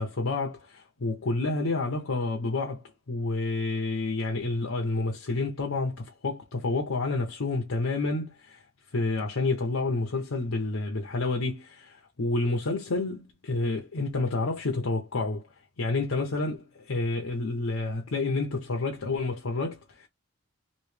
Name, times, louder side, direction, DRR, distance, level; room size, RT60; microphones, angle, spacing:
voice 1, 0.0-8.6 8.9-15.5 15.8-20.1, left 3 dB, 80° left, 0.8 m, -29 dB
3.1 x 2.6 x 3.2 m
head